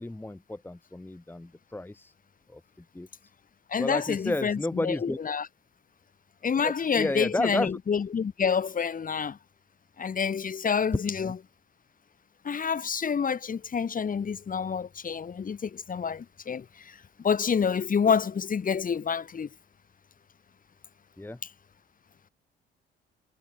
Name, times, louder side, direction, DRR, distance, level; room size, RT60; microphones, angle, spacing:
voice 1, 0.0-2.1 2.5-2.6 2.9-3.1 3.8-5.2 6.6-7.7 11.2-11.3 21.2-21.4, left 2 dB, 10° left, 1.6 m, -32 dB
voice 2, 3.7-5.5 6.4-9.4 10.0-11.4 12.4-19.5 21.4-21.5, left 6 dB, 45° left, 3.7 m, -28 dB
cardioid pair, 90°, 20 cm